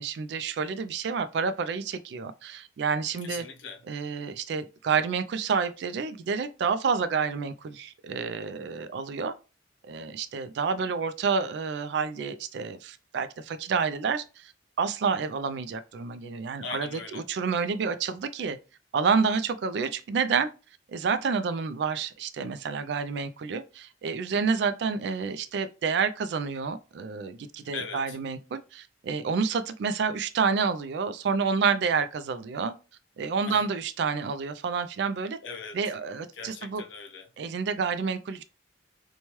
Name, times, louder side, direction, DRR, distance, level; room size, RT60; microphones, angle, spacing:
voice 1, 0.0-3.4 3.9-9.3 9.8-14.5 14.8-18.6 18.9-20.5 20.9-32.7 33.2-35.4 35.7-36.8 37.4-38.4, right 5 dB, 65° right, 0.3 m, -29 dB
voice 2, 3.2-3.8 16.6-17.3 27.7-28.2 33.4-33.6 35.4-35.8 36.3-37.3, left 5 dB, 85° left, 0.5 m, -40 dB
2.9 x 2.2 x 3.0 m
head